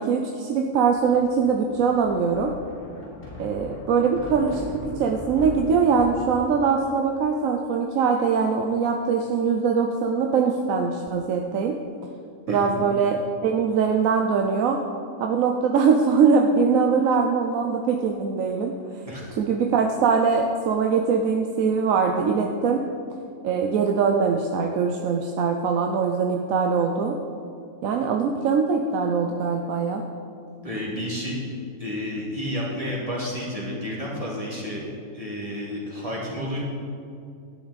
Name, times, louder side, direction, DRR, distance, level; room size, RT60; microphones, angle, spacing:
voice 1, 0.0-2.5 3.4-4.7 5.0-11.7 12.5-14.8 15.2-18.7 19.4-22.8 23.4-27.2 27.8-30.0, right 5 dB, 65° right, 2 dB, 1.0 m, -22 dB
Thunder, 0.9-6.4, equal, 40° left, 2.3 m, -40 dB
voice 2, 19.1-19.4 30.6-31.4 31.8-34.8 35.1-36.6, equal, 20° right, -6 dB, 2.4 m, -31 dB
12.0 x 9.3 x 4.1 m, 2.5 s
omnidirectional pair, 1.6 m